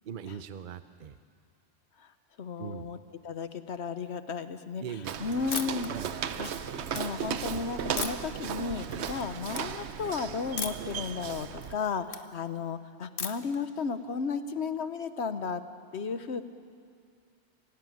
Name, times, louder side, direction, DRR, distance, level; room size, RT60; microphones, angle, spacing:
voice 1, 0.0-1.2 2.6-2.9 4.8-5.2 5.9-6.2, right 8 dB, 55° right, 11 dB, 0.8 m, -40 dB
voice 2, 2.4-3.0 3.2-4.8 5.2-5.9 6.4-15.6 15.9-16.4, left 5 dB, 85° left, 11 dB, 1.3 m, -34 dB
Walk footsteps, 5.0-11.7, right 8 dB, 85° right, 1.1 m, -36 dB
sound 1, 5.5-5.9 6.3-7.0 8.0-8.4 8.8-9.2 9.5-9.6 10.6-10.9 11.3-12.2 13.2-13.6, left 5 dB, 55° left, 1.3 m, -36 dB
25.0 x 16.5 x 9.4 m, 2.2 s
omnidirectional pair, 1.1 m